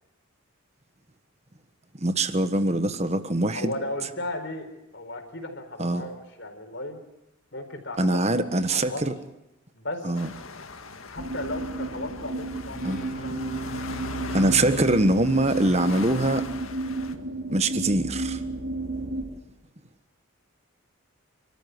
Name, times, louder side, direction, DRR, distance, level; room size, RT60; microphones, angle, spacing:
voice 1, 2.0-3.7 5.8-6.0 8.0-9.1 10.0-10.3 12.8-13.0 14.3-16.4 17.5-18.4, right 2 dB, 30° right, 1.3 m, -23 dB
voice 2, 3.5-4.7 4.9-7.0 7.5-8.4 8.7-9.0 9.7-10.1 11.1-13.6, left 1 dB, 55° left, 4.4 m, -35 dB
sound 1, 10.1-17.2, left 4 dB, 80° left, 1.8 m, -41 dB
sound 2, 11.2-19.2, right 2 dB, 75° right, 4.0 m, -32 dB
sound 3, 12.7-16.3, left 1 dB, 40° left, 2.8 m, -42 dB
30.0 x 14.0 x 9.5 m
head